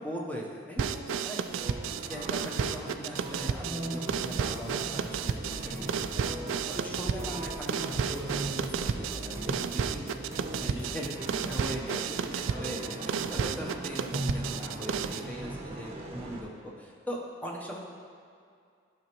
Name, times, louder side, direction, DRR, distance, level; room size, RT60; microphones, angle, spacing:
voice 1, 0.0-0.9 1.2-1.5 1.9-6.2 6.6-10.1 10.6-11.1 11.5-12.0 12.3-17.8, equal, 10° left, -2 dB, 0.9 m, -40 dB
sound 1, 0.8-15.3, right 7 dB, 90° right, 0.3 m, -33 dB
voice 2, 0.9-1.8 5.6-6.2 10.7-13.0, equal, 60° left, -4 dB, 1.6 m, -47 dB
sound 2, 1.4-16.4, right 1 dB, 35° right, 0.8 m, -39 dB
sound 3, 4.1-11.7, right 1 dB, 15° right, 0.5 m, -45 dB
11.5 x 6.1 x 3.0 m, 2.3 s
head